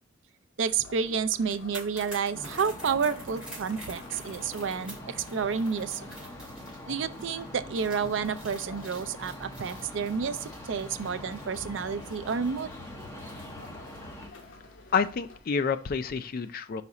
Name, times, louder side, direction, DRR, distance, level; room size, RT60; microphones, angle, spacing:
voice 1, 0.6-6.1 6.9-12.7, right 6 dB, 70° right, 11 dB, 0.4 m, -30 dB
sound 1, 0.7-15.4, left 2 dB, 75° left, 1.0 m, -50 dB
sound 2, 1.4-14.5 14.8-15.0, right 1 dB, 5° right, 2.8 m, -49 dB
sound 3, 2.3-14.3, left 1 dB, 15° left, 0.9 m, -44 dB
voice 2, 14.9-16.8, left 5 dB, 45° left, 10 dB, 0.4 m, -28 dB
5.0 x 4.1 x 4.8 m, 0.42 s
head